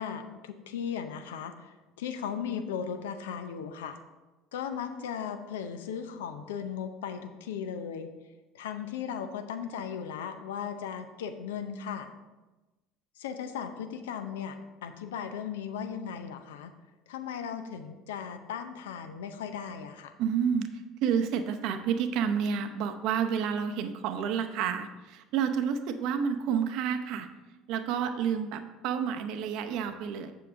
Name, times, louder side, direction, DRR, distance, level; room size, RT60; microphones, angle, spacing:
voice 1, 0.0-4.0 4.5-8.1 8.5-12.1 13.2-16.7 17.1-20.1, left 7 dB, 75° left, 8 dB, 0.6 m, -37 dB
voice 2, 20.2-20.7 21.0-27.3 27.7-30.3, right 7 dB, 60° right, 8 dB, 0.7 m, -29 dB
7.6 x 7.1 x 3.6 m, 1.1 s
hypercardioid pair, 65°, 0 cm